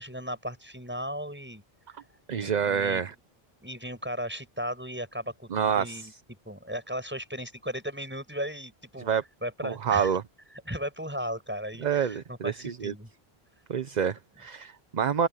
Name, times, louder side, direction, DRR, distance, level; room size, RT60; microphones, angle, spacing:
voice 1, 0.0-1.6 2.1-3.1 3.6-6.1 6.5-9.1 9.4-10.1 10.7-13.1, equal, 10° right, 7.0 m, -36 dB
voice 2, 2.3-3.1 5.5-6.1 9.0-9.2 9.6-10.2 11.8-12.9 13.7-15.3, right 7 dB, 50° right, 0.8 m, -27 dB
omnidirectional pair, 1.0 m